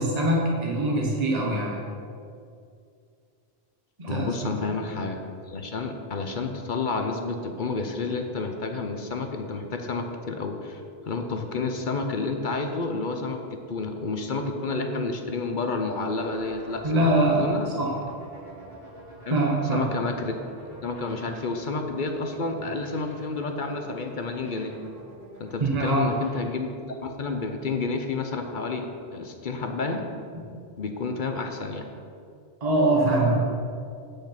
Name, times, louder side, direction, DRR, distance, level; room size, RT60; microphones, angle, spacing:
voice 1, 0.0-1.8 4.0-4.3 16.8-17.4 17.8-17.9 19.3-19.9 25.6-26.1 30.3-30.4 32.6-33.3, right 1 dB, 40° right, -2 dB, 1.2 m, -23 dB
voice 2, 4.1-5.2 5.5-17.7 19.3-19.4 19.7-20.3 20.8-24.7 25.4-26.7 27.0-28.9 29.1-30.0 30.8-31.9, left 3 dB, 55° left, 4 dB, 0.9 m, -30 dB
sound 1, 16.1-26.5, right 1 dB, 65° right, 2.7 m, -46 dB
8.5 x 6.7 x 5.8 m, 2.4 s
omnidirectional pair, 1.0 m